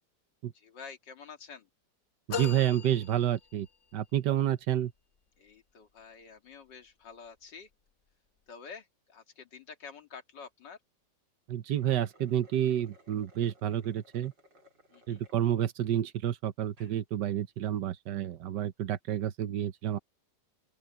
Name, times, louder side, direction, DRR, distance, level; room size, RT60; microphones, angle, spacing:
voice 1, 0.5-1.7 5.4-7.7 8.5-10.8 14.9-15.3, left 5 dB, 75° left, 2.6 m, -49 dB
sound 1, 2.3-4.0, left 7 dB, 45° left, 1.1 m, -39 dB
voice 2, 2.3-3.7 3.9-4.9 11.5-14.3 15.1-20.0, right 11 dB, 75° right, 1.5 m, -29 dB
sound 2, 11.6-15.5 16.0-16.1 16.6-17.0, equal, 90° right, 4.5 m, -60 dB
open air
omnidirectional pair, 1.9 m